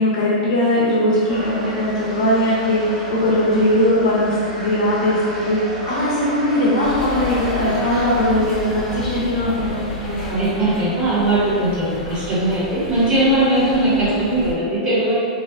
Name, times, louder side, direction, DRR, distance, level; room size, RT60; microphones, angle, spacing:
voice 1, 0.0-10.2, left 1 dB, 65° left, -8 dB, 0.6 m, -19 dB
sound 1, 1.3-8.3, right 1 dB, 70° right, 1.0 m, -31 dB
sound 2, 6.8-14.5, left 2 dB, 20° left, 0.9 m, -31 dB
voice 2, 10.2-15.2, right 1 dB, 35° right, -10 dB, 1.1 m, -19 dB
2.5 x 2.2 x 2.4 m, 2.2 s
hypercardioid pair, 125°, 4 cm